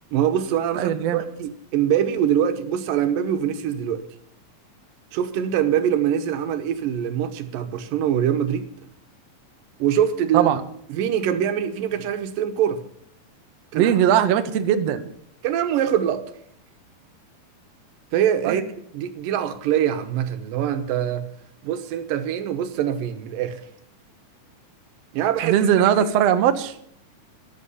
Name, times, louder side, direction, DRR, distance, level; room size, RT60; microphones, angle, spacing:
voice 1, 0.1-4.0 5.1-8.7 9.8-10.5 10.9-12.8 13.7-13.9 15.4-16.3 18.1-18.6 18.9-21.3 21.6-23.6 25.1-25.9, right 9 dB, 75° right, 2.5 m, -23 dB
voice 2, 0.7-1.2 10.3-10.6 13.7-15.0 18.4-18.6 25.4-26.7, right 10 dB, 90° right, 1.4 m, -19 dB
14.0 x 10.5 x 5.6 m
omnidirectional pair, 4.2 m